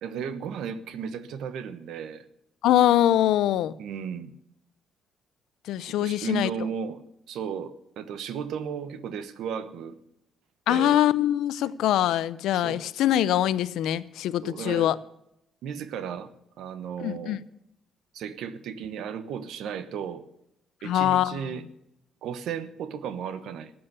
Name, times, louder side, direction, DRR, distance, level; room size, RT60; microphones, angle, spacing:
voice 1, 0.0-2.2 3.8-4.3 5.8-7.0 7.3-10.0 10.7-11.0 12.5-12.8 14.4-14.9 15.6-16.3 16.6-17.4 18.1-20.2 20.8-21.6 22.2-23.7, right 7 dB, 80° right, 12 dB, 1.1 m, -34 dB
voice 2, 2.6-3.7 5.7-6.5 10.7-15.0 17.0-17.4 20.8-21.6, left 12 dB, 85° left, 17 dB, 0.6 m, -23 dB
14.0 x 8.7 x 6.9 m, 0.80 s
cardioid pair, 90°, 0 cm